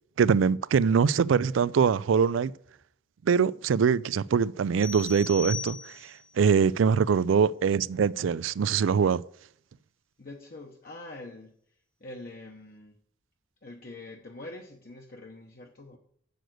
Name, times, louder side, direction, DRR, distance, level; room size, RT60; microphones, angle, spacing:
voice 1, 0.2-2.5 3.3-9.2, right 6 dB, 80° right, 0.4 m, -23 dB
sound 1, 4.8-6.3, left 4 dB, 10° right, 0.8 m, -38 dB
voice 2, 10.2-13.0 13.6-16.0, left 2 dB, 50° left, 1.0 m, -45 dB
7.8 x 6.6 x 7.7 m
head